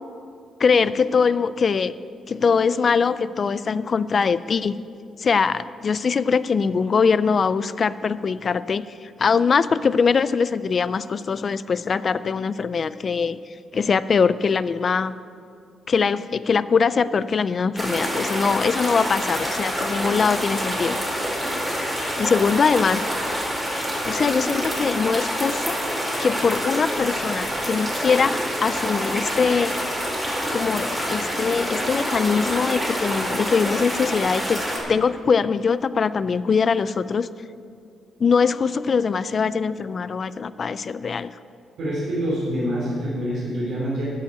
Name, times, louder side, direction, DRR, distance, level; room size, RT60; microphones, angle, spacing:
voice 1, 0.6-1.9 2.3-4.8 5.2-13.4 13.7-15.1 15.9-21.0 21.9-23.3 24.0-25.8 26.2-29.8 30.5-34.6 34.9-37.3 38.2-41.3, left 5 dB, 35° left, 15 dB, 0.3 m, -22 dB
sound 1, 17.8-34.8, equal, 5° right, 2.3 m, -27 dB
voice 2, 41.8-44.0, equal, 70° right, -8 dB, 3.6 m, -26 dB
13.0 x 5.6 x 8.9 m, 2.3 s
cardioid pair, 170°, 0 cm